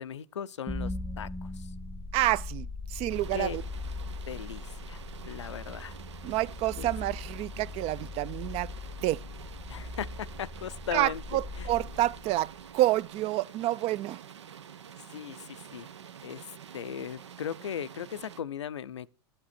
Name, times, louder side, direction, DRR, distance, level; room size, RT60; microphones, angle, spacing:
voice 1, 0.0-1.7 3.3-3.6 4.3-5.0 5.3-5.9 6.8-6.9 9.7-11.7 15.1-15.9 16.2-16.4 16.7-19.1, left 8 dB, 90° left, 0.5 m, -38 dB
sound 1, 0.7-12.8, left 3 dB, ahead, 0.5 m, -40 dB
voice 2, 2.1-3.6 6.2-8.7 9.0-9.2 10.9-14.2, right 16 dB, 45° right, 0.5 m, -28 dB
sound 2, 3.1-18.4, right 8 dB, 85° right, 0.8 m, -48 dB
10.5 x 8.7 x 4.3 m
hypercardioid pair, 95°, 14 cm